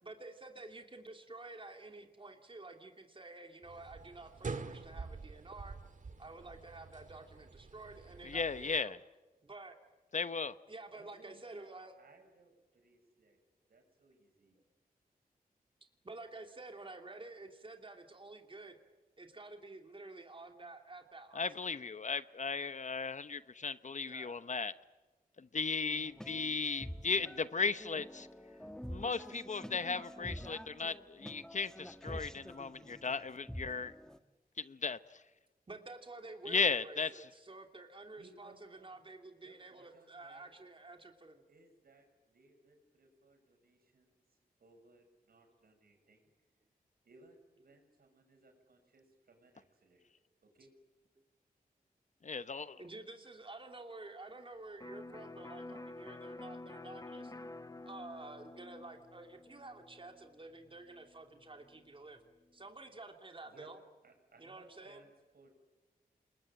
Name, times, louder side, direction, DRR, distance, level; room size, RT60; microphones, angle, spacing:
voice 1, 0.0-5.8 6.2-9.0 9.4-9.8 10.7-11.9 16.0-18.8 19.2-21.5 24.0-24.4 35.7-41.4 52.7-57.3 57.6-62.2 62.5-63.8 64.4-65.0, right 2 dB, 35° right, 2.9 m, -50 dB
sound 1, 3.6-8.8, right 4 dB, 55° right, 1.8 m, -47 dB
voice 2, 8.2-9.0 10.1-10.5 21.3-24.7 25.4-28.3 28.9-33.9 34.6-35.2 36.5-37.2 52.2-52.8, left 5 dB, 50° left, 1.0 m, -36 dB
voice 3, 10.9-11.6 12.0-13.4 13.7-14.6 38.2-39.0 39.4-40.5 41.5-46.2 47.0-50.0 50.4-50.7 63.4-63.8 64.0-65.5, right 2 dB, 75° right, 6.8 m, -63 dB
sound 2, 25.9-34.2, equal, 5° left, 1.4 m, -48 dB
Electric guitar, 54.8-62.5, left 2 dB, 25° left, 1.1 m, -50 dB
27.5 x 22.0 x 8.9 m
cardioid pair, 70°, 16 cm